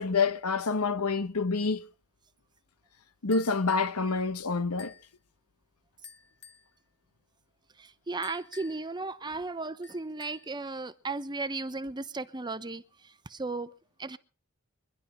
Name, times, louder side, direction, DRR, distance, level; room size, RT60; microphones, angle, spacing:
voice 1, 0.0-1.8 3.2-4.9, left 4 dB, 85° left, 1.0 m, -27 dB
sound 1, 3.3-4.0 4.8-5.1 6.0-6.7 8.2-8.9 9.8-10.5, left 7 dB, 50° left, 2.0 m, -51 dB
voice 2, 8.1-12.8 13.3-13.7 14.0-14.2, right 3 dB, 20° right, 0.8 m, -35 dB
24.0 x 11.5 x 4.3 m
head